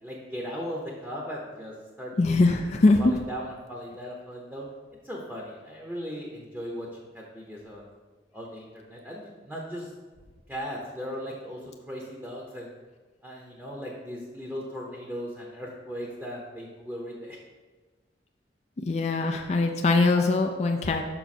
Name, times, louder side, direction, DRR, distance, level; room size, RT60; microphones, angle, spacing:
voice 1, 0.0-2.5 3.0-4.7 5.0-7.9 8.3-9.9 10.5-12.8 13.2-17.4, equal, 5° right, -2 dB, 0.8 m, -38 dB
voice 2, 2.2-3.0 18.8-21.0, left 3 dB, 40° left, 3 dB, 0.4 m, -22 dB
5.9 x 5.6 x 4.2 m, 1.3 s
head